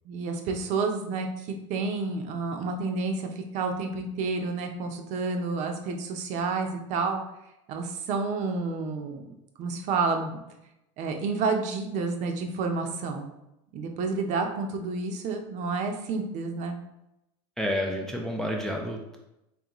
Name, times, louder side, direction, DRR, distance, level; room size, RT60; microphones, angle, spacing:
voice 1, 0.1-7.2 7.7-9.2 9.6-10.4 11.0-13.3 13.7-16.8, right 4 dB, 45° right, 4 dB, 0.6 m, -30 dB
voice 2, 17.6-19.2, equal, 5° left, 0 dB, 0.3 m, -30 dB
3.8 x 3.2 x 3.0 m, 0.89 s
supercardioid pair, 145°, 16 cm